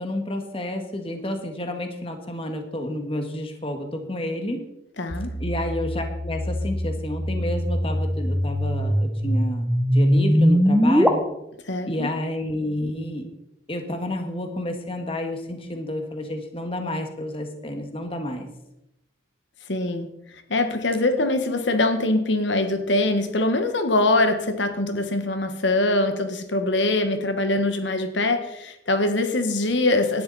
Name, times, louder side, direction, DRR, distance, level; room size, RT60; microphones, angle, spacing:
voice 1, 0.0-4.7 5.4-11.2 11.9-13.2 13.7-18.5, left 1 dB, 30° left, 5 dB, 1.9 m, -30 dB
voice 2, 5.0-5.3 11.7-12.1 19.7-20.1 20.5-30.2, left 2 dB, 80° left, 7 dB, 1.6 m, -23 dB
sound 1, 5.1-11.1, equal, 5° right, 1.2 m, -22 dB
18.0 x 12.0 x 4.3 m, 0.84 s
head